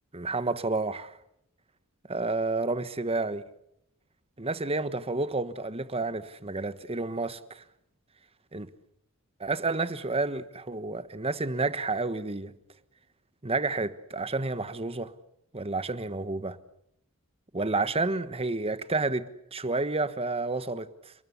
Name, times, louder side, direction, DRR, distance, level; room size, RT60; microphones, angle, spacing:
voice 1, 0.1-1.2 2.1-3.4 4.4-7.6 8.5-8.7 9.4-12.5 13.4-15.1 15.5-16.6 17.5-21.1, right 3 dB, 25° right, 1.3 m, -30 dB
29.5 x 20.5 x 8.3 m
head